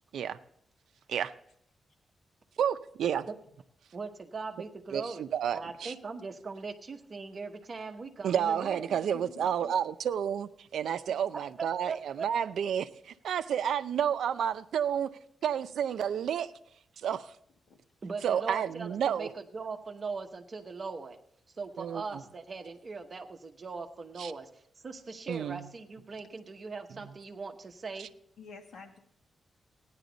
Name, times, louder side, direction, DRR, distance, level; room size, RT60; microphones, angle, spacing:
voice 1, 2.6-3.3 4.9-5.9 8.2-15.1 15.4-16.5 17.0-17.3 18.2-19.3 21.8-22.0 24.2-24.3 25.3-25.7 28.0-28.1, right 8 dB, 90° right, 11 dB, 0.5 m, -30 dB
voice 2, 3.9-5.3 5.5-9.0 11.6-12.3 18.0-21.2 21.6-28.1, right 4 dB, 35° right, 5 dB, 1.0 m, -40 dB
voice 3, 9.0-9.8 11.1-11.3 17.7-17.8 28.4-29.0, left 5 dB, 70° left, 2 dB, 1.8 m, -50 dB
16.0 x 10.5 x 4.0 m, 0.68 s
wide cardioid pair, 165°, 0 cm